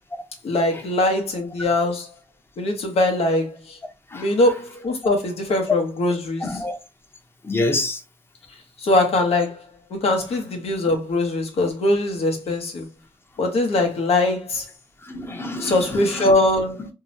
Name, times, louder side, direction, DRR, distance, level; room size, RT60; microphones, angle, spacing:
voice 1, 0.4-2.1 2.6-3.8 4.1-6.6 8.8-12.9 13.4-14.6 15.6-16.9, left 2 dB, 80° left, 0.8 m, -22 dB
voice 2, 6.4-6.8 7.4-8.0 15.1-15.8 16.1-16.3, left 2 dB, 20° left, 0.7 m, -26 dB
2.7 x 2.0 x 2.6 m
cardioid pair, 80°, 10 cm